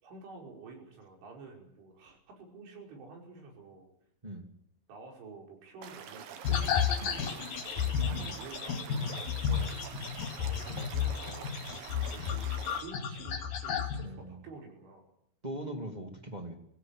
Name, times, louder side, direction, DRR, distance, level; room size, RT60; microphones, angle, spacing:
voice 1, 0.0-3.9 4.9-9.8 10.4-15.1, right 3 dB, 85° right, 2 dB, 7.6 m, -49 dB
Stream / Liquid, 5.8-12.8, right 8 dB, 60° right, 2.7 m, -46 dB
sound 1, 6.4-14.1, left 8 dB, 55° left, 3.6 m, -32 dB
voice 2, 14.0-14.4 15.4-16.6, right 1 dB, 15° right, 4 dB, 1.4 m, -40 dB
23.0 x 16.0 x 9.2 m, 0.73 s
omnidirectional pair, 5.4 m